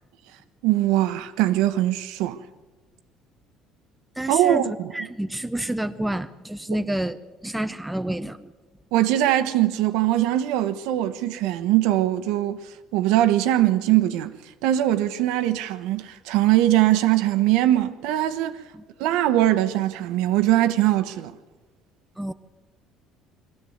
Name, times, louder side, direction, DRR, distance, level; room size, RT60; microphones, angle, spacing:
voice 1, 0.6-2.4 4.3-4.7 8.9-12.6 12.9-14.3 14.6-18.6 19.0-21.3, right 13 dB, 85° right, 1.2 m, -21 dB
voice 2, 4.2-4.6 4.9-8.5 18.7-18.8 22.2-22.3, right 1 dB, 5° right, 0.6 m, -29 dB
22.0 x 15.0 x 8.1 m
cardioid pair, 150°, 0 cm